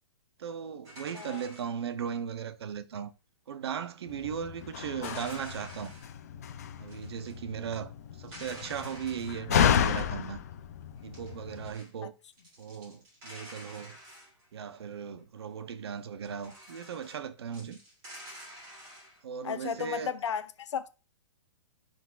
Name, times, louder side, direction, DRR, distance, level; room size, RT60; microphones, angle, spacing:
voice 1, 0.4-3.1 3.5-5.9 6.8-7.9 8.2-10.4 11.0-12.1 12.6-14.0 14.5-17.8 19.2-20.1, right 7 dB, 55° right, 0.6 m, -37 dB
sound 1, 0.8-2.2 5.0-6.1 6.9-7.3 7.6-7.8 8.2-9.4 11.0-11.9 12.3-14.8 16.3-17.2 17.5-19.2, equal, 20° right, 3.2 m, -49 dB
Slam, 4.1-11.7, left 8 dB, 30° left, 0.4 m, -32 dB
voice 2, 19.4-20.9, left 7 dB, 70° left, 0.7 m, -34 dB
10.0 x 4.0 x 2.4 m
hypercardioid pair, 180°, 16 cm